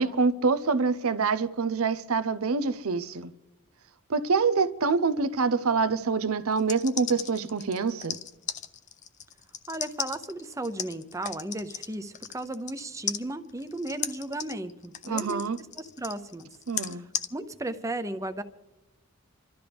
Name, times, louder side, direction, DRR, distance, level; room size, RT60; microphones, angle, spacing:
voice 1, 0.0-3.3 4.1-8.2 15.0-15.6 16.7-17.0, right 4 dB, 80° right, 0.7 m, -26 dB
sound 1, 6.5-12.8 13.1-17.3, left 9 dB, 35° left, 0.5 m, -35 dB
voice 2, 9.7-15.5 15.8-16.5 16.9-17.0 17.3-18.4, right 2 dB, 15° right, 0.6 m, -35 dB
28.5 x 13.0 x 3.5 m
head